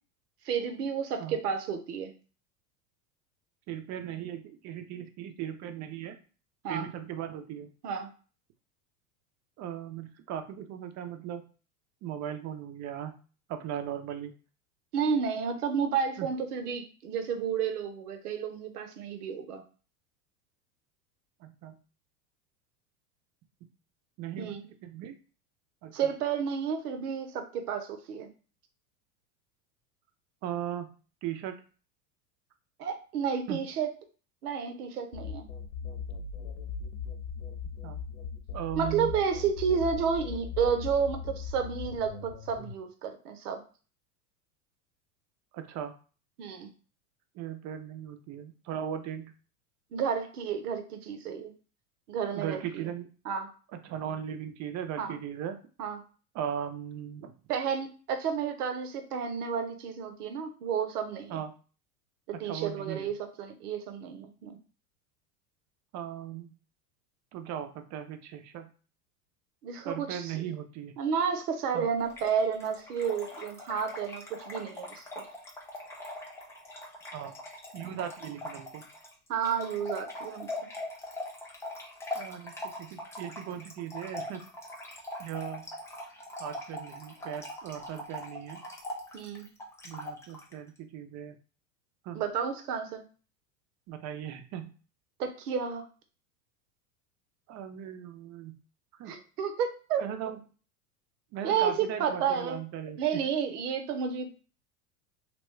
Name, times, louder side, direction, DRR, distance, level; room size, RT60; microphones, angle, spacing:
voice 1, 0.4-2.1 6.6-6.9 7.8-8.1 14.9-19.6 24.4-24.6 25.9-28.3 32.8-33.9 34.4-35.5 38.8-43.6 46.4-46.7 49.9-51.5 52.1-52.9 53.2-53.5 55.0-55.2 55.8-56.0 57.5-61.4 62.3-64.6 69.6-70.5 71.0-75.0 79.3-80.5 89.1-89.5 92.1-93.0 95.2-95.9 99.1-100.0 101.4-102.6 103.0-104.3, right 7 dB, 75° right, 7 dB, 0.7 m, -31 dB
voice 2, 3.7-6.2 6.7-7.7 9.6-11.4 12.0-13.1 13.5-14.3 16.2-16.3 21.4-21.7 24.2-25.2 25.8-26.1 30.4-30.9 31.2-31.6 33.5-33.6 37.8-38.0 38.5-39.1 45.5-45.9 47.4-49.3 52.3-53.1 53.7-55.6 56.3-57.3 61.3-61.5 62.3-63.1 65.9-66.5 67.3-68.7 69.8-71.0 71.7-71.9 77.1-77.4 77.7-78.8 82.1-82.5 82.8-84.5 85.2-85.6 86.4-88.6 89.8-91.4 92.0-92.2 93.9-94.7 97.5-98.6 99.0-99.1 100.0-100.4 101.3-103.2, right 9 dB, 35° right, 7 dB, 0.6 m, -38 dB
sound 1, 35.1-42.7, left 5 dB, 70° left, 0.7 m, -39 dB
Trickle dribble / Fill (with liquid), 72.1-90.5, left 1 dB, 5° left, 0.3 m, -42 dB
2.9 x 2.1 x 3.1 m, 0.37 s
hypercardioid pair, 90°, 46 cm